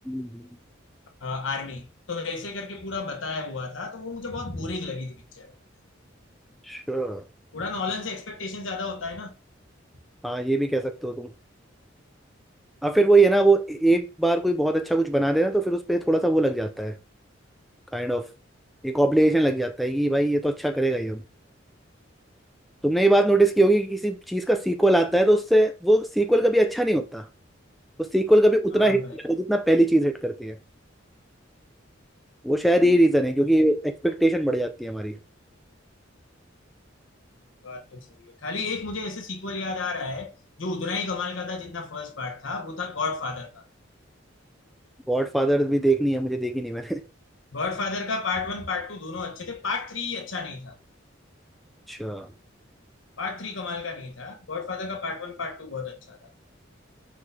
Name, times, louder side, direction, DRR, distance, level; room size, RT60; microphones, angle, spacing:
voice 1, 0.1-0.4 6.7-7.2 10.2-11.3 12.8-16.9 17.9-18.2 18.8-21.2 22.8-27.2 28.0-30.6 32.4-35.1 45.1-47.0 51.9-52.3, right 1 dB, ahead, 0.3 m, -21 dB
voice 2, 1.2-5.5 7.5-9.3 28.7-29.2 37.6-40.3 40.6-43.6 47.5-50.8 53.2-56.3, left 4 dB, 75° left, 1.0 m, -32 dB
4.7 x 4.0 x 2.7 m
head